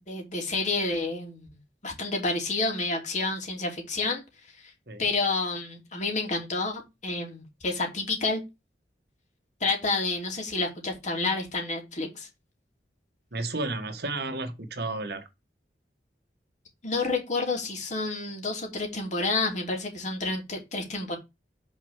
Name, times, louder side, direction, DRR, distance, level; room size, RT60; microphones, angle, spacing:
voice 1, 0.1-1.5 1.8-4.2 5.0-8.4 9.6-12.3 16.8-21.2, left 3 dB, 45° left, 3.0 m, -29 dB
voice 2, 13.3-15.2, right 2 dB, 65° right, 1.6 m, -32 dB
6.4 x 4.5 x 6.5 m
head